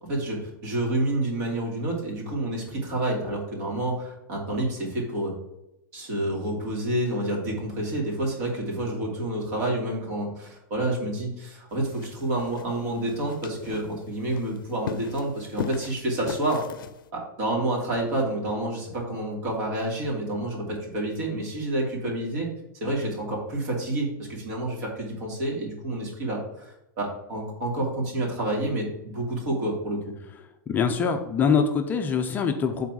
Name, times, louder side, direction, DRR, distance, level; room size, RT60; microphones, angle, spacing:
voice 1, 0.0-5.4 5.9-16.6 17.4-22.5 22.8-30.1, right 1 dB, 50° right, -1 dB, 2.7 m, -29 dB
sound 1, 11.7-17.1, left 9 dB, 85° left, 0.5 m, -39 dB
voice 2, 30.7-32.9, left 6 dB, 15° left, 5 dB, 0.5 m, -24 dB
5.9 x 4.0 x 6.1 m, 0.89 s
supercardioid pair, 160°, 11 cm